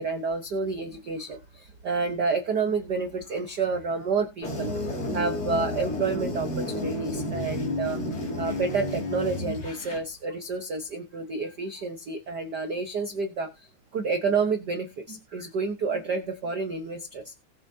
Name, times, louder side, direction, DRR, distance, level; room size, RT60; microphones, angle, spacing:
voice 1, 0.0-4.7 5.1-8.0 8.4-17.3, right 4 dB, 85° right, 6 dB, 0.9 m, -29 dB
sound 1, 4.4-10.0, left 1 dB, 35° left, 2.6 m, -31 dB
20.0 x 6.9 x 2.7 m, 0.25 s
omnidirectional pair, 3.5 m